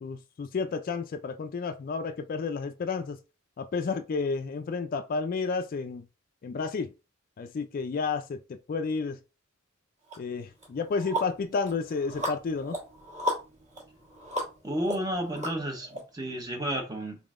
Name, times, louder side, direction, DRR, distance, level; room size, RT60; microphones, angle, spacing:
voice 1, 0.0-3.2 3.6-6.1 6.4-6.9 7.4-9.2 10.2-12.8, left 4 dB, 45° left, 0.3 m, -31 dB
sound 1, 10.1-10.2 10.6-16.0, equal, 35° right, 1.5 m, -35 dB
voice 2, 14.6-17.2, right 1 dB, 20° right, 0.8 m, -32 dB
3.7 x 3.6 x 2.4 m
head